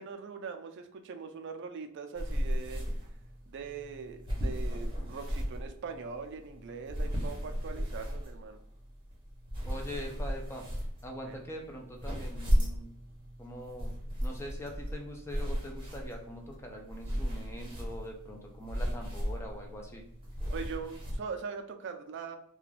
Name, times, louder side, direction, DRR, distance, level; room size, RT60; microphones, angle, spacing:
voice 1, 0.0-2.9 3.5-8.6 11.2-11.4 20.5-22.4, right 5 dB, 55° right, 7 dB, 0.4 m, -41 dB
sound 1, 2.2-21.2, equal, 25° right, 0.7 m, -35 dB
voice 2, 9.7-10.7 11.0-12.9 13.4-13.9 14.2-20.0, equal, 10° left, 1 dB, 0.4 m, -43 dB
2.4 x 2.2 x 3.2 m, 0.72 s
head